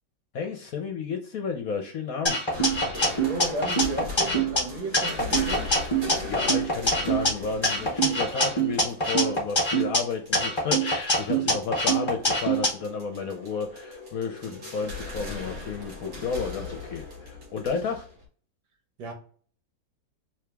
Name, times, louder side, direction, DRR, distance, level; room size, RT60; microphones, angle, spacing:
voice 1, 0.3-2.4 6.0-18.0, left 5 dB, 65° left, 0.9 m, -32 dB
sound 1, 2.2-4.6 4.9-7.3 7.6-10.0 10.3-12.7, right 1 dB, 45° left, 0.3 m, -24 dB
sound 2, 2.5-18.2, left 3 dB, 65° right, 2.7 m, -39 dB
voice 2, 3.1-5.7 11.4-11.6 14.5-14.7 19.0-19.1, right 1 dB, 80° right, 2.1 m, -34 dB
4.9 x 3.1 x 3.4 m
omnidirectional pair, 2.1 m